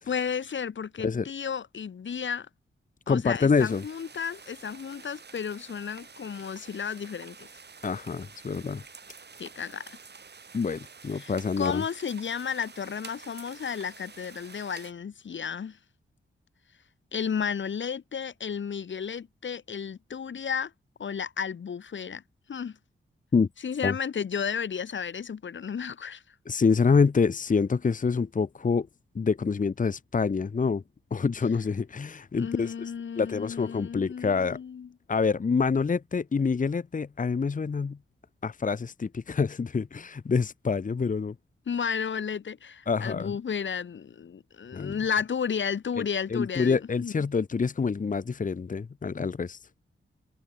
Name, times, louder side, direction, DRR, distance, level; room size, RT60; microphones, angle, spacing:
voice 1, 0.1-2.5 3.1-7.5 9.4-10.0 11.1-15.8 17.1-20.7 21.0-22.2 22.5-22.8 23.6-26.2 32.4-34.9 41.7-47.1, left 7 dB, 65° left, 1.6 m, -33 dB
voice 2, 3.1-3.8 7.8-8.8 10.5-11.8 23.3-23.5 23.8-23.9 26.5-28.9 29.1-30.8 31.1-32.9 33.2-34.6 35.1-38.0 38.4-41.3 42.9-43.3 44.7-45.0 46.0-46.1 46.3-49.8, left 5 dB, 40° left, 1.0 m, -26 dB
sound 1, 3.6-14.9, right 5 dB, 55° right, 7.1 m, -49 dB
wide cardioid pair, 85°, 21 cm